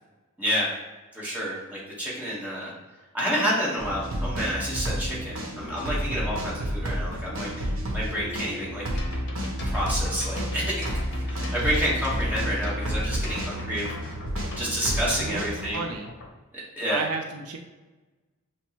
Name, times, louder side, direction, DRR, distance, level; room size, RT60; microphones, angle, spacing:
voice 1, 0.4-0.7 1.1-2.7 3.1-8.8 9.7-10.9 11.2-13.9 14.6-15.8 16.8-17.0, equal, 5° right, -6 dB, 1.0 m, -29 dB
sound 1, 3.8-15.7, equal, 65° right, 0.9 m, -30 dB
sound 2, 9.0-16.3, left 2 dB, 55° left, 0.7 m, -42 dB
voice 2, 15.1-16.1 16.9-17.6, right 4 dB, 80° right, 3 dB, 0.4 m, -33 dB
6.0 x 2.1 x 2.9 m, 1.2 s
head